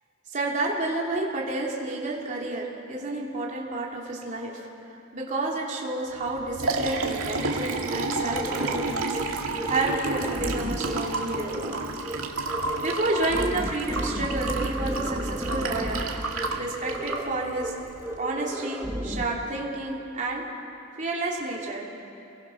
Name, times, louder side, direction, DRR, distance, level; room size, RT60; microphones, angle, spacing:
voice 1, 0.3-4.6 5.1-11.5 12.8-16.0 16.6-17.7 18.2-20.4 21.0-21.9, right 2 dB, 35° right, -3 dB, 3.1 m, -30 dB
Liquid, 6.3-18.2, right 3 dB, 80° right, 2.1 m, -31 dB
sound 1, 7.9-8.0 8.3-8.8 9.1-9.2 9.5-10.9 11.3-11.8 12.0-12.2 12.5-16.0 16.3-16.5 16.8-17.3 17.6-17.7 18.0-19.2, right 1 dB, 15° right, 1.8 m, -33 dB
29.0 x 21.5 x 5.9 m, 2.8 s
head